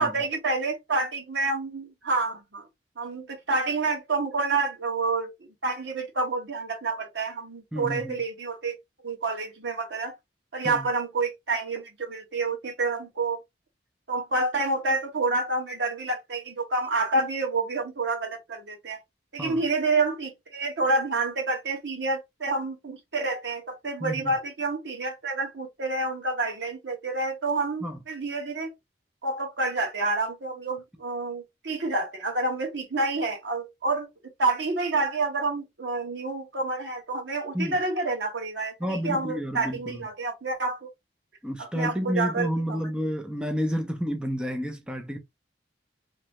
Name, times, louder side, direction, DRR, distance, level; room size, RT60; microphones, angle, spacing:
voice 1, 0.0-2.7 3.0-5.3 5.6-8.8 9.0-10.2 10.5-13.4 14.1-19.0 19.3-28.7 29.2-34.1 34.4-40.9 41.6-43.1, right 3 dB, 85° right, 1.2 m, -28 dB
voice 2, 7.7-8.2 10.6-10.9 19.4-19.6 24.0-24.4 27.8-28.0 37.5-37.8 38.8-40.0 41.4-45.2, equal, 5° right, 0.5 m, -30 dB
2.9 x 2.6 x 3.1 m
head